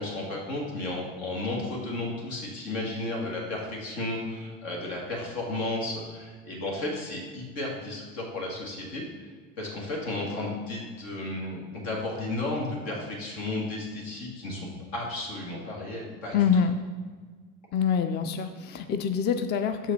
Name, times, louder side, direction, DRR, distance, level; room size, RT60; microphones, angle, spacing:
voice 1, 0.0-9.3 9.6-16.5, left 2 dB, 75° left, -2 dB, 2.0 m, -33 dB
voice 2, 16.3-16.7 17.7-19.9, left 7 dB, 30° left, 9 dB, 0.4 m, -25 dB
6.1 x 4.9 x 4.1 m, 1.5 s
hypercardioid pair, 75°, 39 cm